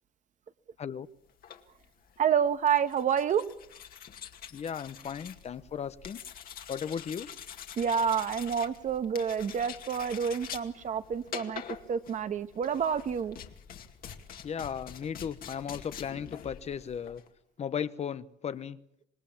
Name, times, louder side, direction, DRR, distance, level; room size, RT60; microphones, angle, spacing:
sound 1, 1.3-17.3, left 8 dB, 60° left, 2.3 m, -46 dB
voice 1, 2.2-3.4 7.8-11.6 11.9-13.4, right 7 dB, 45° right, 10 dB, 1.4 m, -28 dB
voice 2, 4.5-6.2 6.7-7.3 14.4-17.2 17.6-18.8, left 7 dB, 40° left, 13 dB, 1.0 m, -36 dB
26.5 x 20.0 x 7.2 m, 0.73 s
cardioid pair, 110°, 17 cm